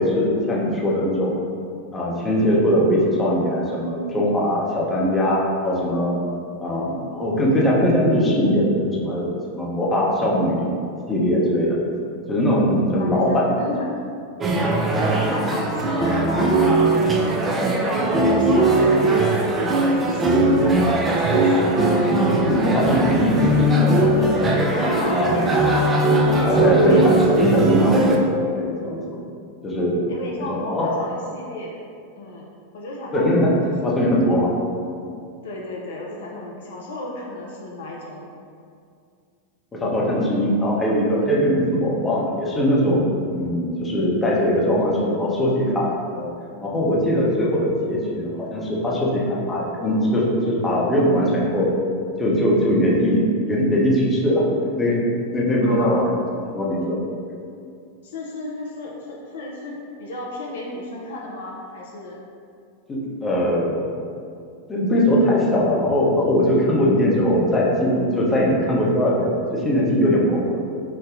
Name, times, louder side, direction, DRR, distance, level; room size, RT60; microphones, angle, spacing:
voice 1, 0.0-1.4 1.9-6.2 6.6-10.7 11.1-11.8 12.3-13.5 22.5-24.6 25.1-25.5 26.4-28.0 28.5-29.2 29.6-30.0 30.5-30.9 33.1-34.5 39.7-45.9 46.2-46.3 46.6-51.7 52.2-53.2 53.5-55.0 55.3-56.0 56.5-57.0 62.9-63.9 64.7-70.6, equal, 15° left, -5 dB, 0.7 m, -21 dB
voice 2, 13.0-13.9 14.9-16.9 17.8-19.5 20.0-21.9 24.7-28.3 30.1-31.8 32.2-32.5 32.7-34.1 35.4-38.3 55.6-56.0 58.0-62.2, left 2 dB, 60° left, -3 dB, 0.4 m, -34 dB
sound 1, 14.4-28.2, right 2 dB, 20° right, 0.4 m, -19 dB
4.9 x 2.1 x 2.5 m, 2.4 s
figure-of-eight pair, 90°, 0 cm